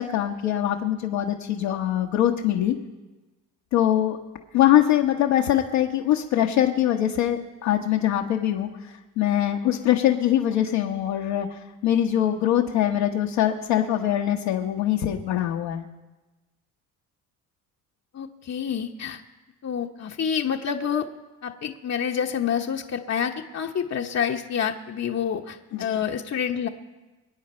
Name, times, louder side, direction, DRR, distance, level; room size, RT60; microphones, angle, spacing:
voice 1, 0.0-2.8 3.7-4.2 4.5-15.9 25.7-26.0, left 11 dB, 70° left, 0 dB, 1.2 m, -23 dB
voice 2, 18.1-19.2 19.6-21.1 21.4-26.7, left 8 dB, 35° left, 3 dB, 1.0 m, -28 dB
23.5 x 9.4 x 4.4 m, 1.2 s
hypercardioid pair, 55°, 44 cm